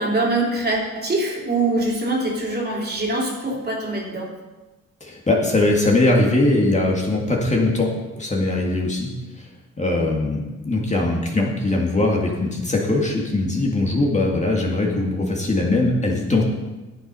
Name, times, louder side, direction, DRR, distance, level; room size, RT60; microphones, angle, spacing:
voice 1, 0.0-4.3, right 2 dB, 30° right, -2 dB, 2.9 m, -23 dB
voice 2, 5.0-9.1 9.4-9.5 9.8-16.4, left 2 dB, 25° left, -1 dB, 2.0 m, -21 dB
10.0 x 7.6 x 5.5 m, 1.1 s
cardioid pair, 90°, 30 cm